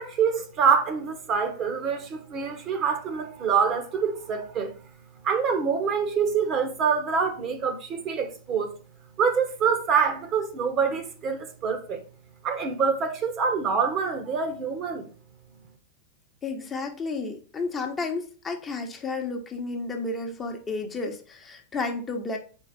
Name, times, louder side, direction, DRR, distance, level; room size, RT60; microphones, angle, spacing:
voice 1, 0.0-4.7 5.2-8.7 9.2-12.0 12.4-15.1, right 6 dB, 35° right, 1.3 m, -25 dB
voice 2, 16.4-22.4, left 3 dB, 20° left, 1.1 m, -32 dB
4.6 x 4.1 x 5.2 m
hypercardioid pair, 100°, 0 cm